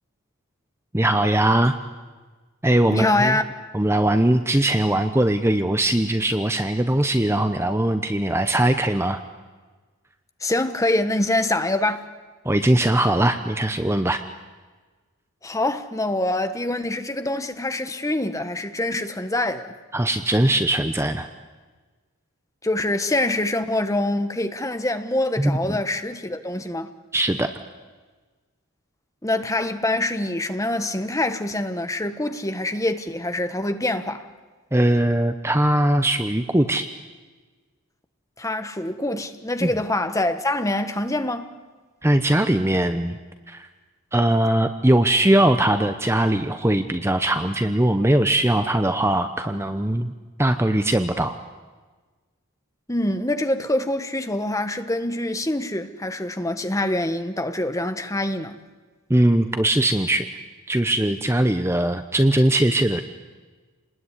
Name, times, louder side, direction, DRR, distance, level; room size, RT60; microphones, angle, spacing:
voice 1, 0.9-1.7 2.6-3.4 3.7-9.2 12.4-14.2 19.9-21.3 25.4-25.8 27.1-27.5 34.7-36.9 39.6-39.7 42.0-43.2 43.5-43.7 44.1-50.1 50.4-51.4 59.1-60.3 60.7-63.0, right 1 dB, 10° right, 0.8 m, -20 dB
voice 2, 2.9-3.4 10.4-12.1 15.4-19.7 22.6-26.9 29.2-34.3 38.4-41.5 52.9-58.6, left 1 dB, 15° left, 1.2 m, -25 dB
28.5 x 20.5 x 9.9 m
head